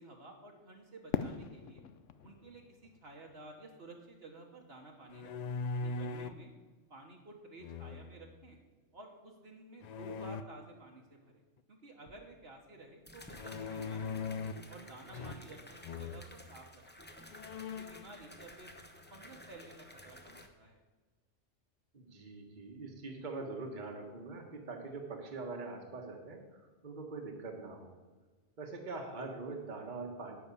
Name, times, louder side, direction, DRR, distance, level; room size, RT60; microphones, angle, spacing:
voice 1, 0.0-1.8 2.2-6.5 6.9-8.6 8.9-11.4 11.7-14.1 14.4-17.1 17.8-18.7 19.1-20.8, right 2 dB, 55° right, 1 dB, 1.5 m, -53 dB
Fireworks, 1.1-4.2, left 8 dB, 90° left, 1.0 m, -41 dB
sound 1, 5.1-6.4 7.6-8.3 9.8-10.4 13.3-14.7 15.1-15.6 15.8-16.3 16.9-17.0 17.3-18.1, left 4 dB, 70° left, 0.4 m, -40 dB
sound 2, 12.1-12.2 13.1-20.5, left 1 dB, 10° left, 0.8 m, -53 dB
voice 2, 21.9-27.9 28.6-30.4, right 3 dB, 40° right, 2 dB, 1.4 m, -43 dB
11.0 x 5.1 x 8.4 m, 1.3 s
omnidirectional pair, 1.2 m